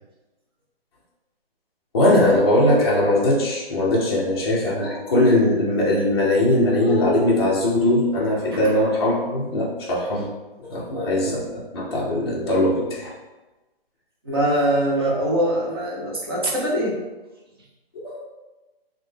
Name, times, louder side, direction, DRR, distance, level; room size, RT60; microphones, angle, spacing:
voice 1, 1.9-10.3 10.6-13.1 17.9-18.2, left 1 dB, 25° left, -6 dB, 0.5 m, -20 dB
voice 2, 14.2-17.0, right 1 dB, 25° right, -4 dB, 0.5 m, -23 dB
3.2 x 2.1 x 3.2 m, 1.1 s
hypercardioid pair, 155°, 30 cm